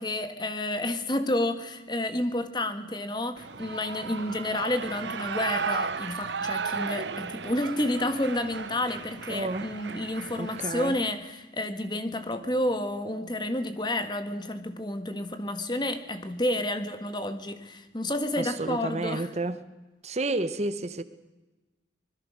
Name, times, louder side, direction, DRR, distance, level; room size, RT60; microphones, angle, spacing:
voice 1, 0.0-19.3, left 1 dB, 25° left, 1.5 m, -30 dB
Shout / Cheering, 3.4-11.1, right 5 dB, 75° right, 1.0 m, -35 dB
voice 2, 9.3-9.7 10.4-10.9 18.4-19.6 20.0-21.0, right 2 dB, 35° right, 0.9 m, -31 dB
25.5 x 21.0 x 6.4 m
head